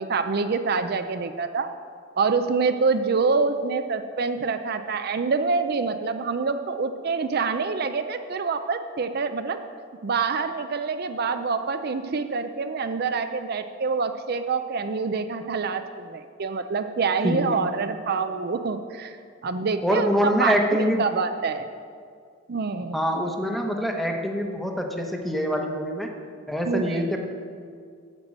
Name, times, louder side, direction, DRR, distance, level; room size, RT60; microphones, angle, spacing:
voice 1, 0.0-1.7 2.2-9.6 10.0-19.2 19.4-21.7 22.5-23.0 26.7-27.0, right 4 dB, 55° right, 9 dB, 0.5 m, -26 dB
voice 2, 19.8-21.0 22.9-26.1 26.5-27.2, equal, ahead, 2 dB, 1.0 m, -25 dB
8.9 x 7.6 x 7.4 m, 2.2 s
head